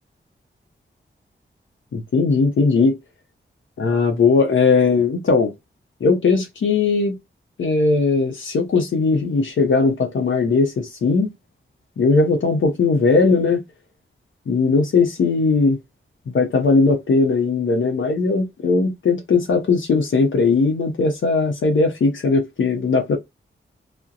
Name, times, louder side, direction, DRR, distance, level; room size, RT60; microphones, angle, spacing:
voice 1, 1.9-3.0 3.8-5.5 6.0-7.2 7.6-11.3 12.0-13.6 14.5-15.8 16.3-23.2, left 4 dB, 70° left, 0.6 m, -18 dB
2.3 x 2.1 x 2.7 m
wide cardioid pair, 80°, 20 cm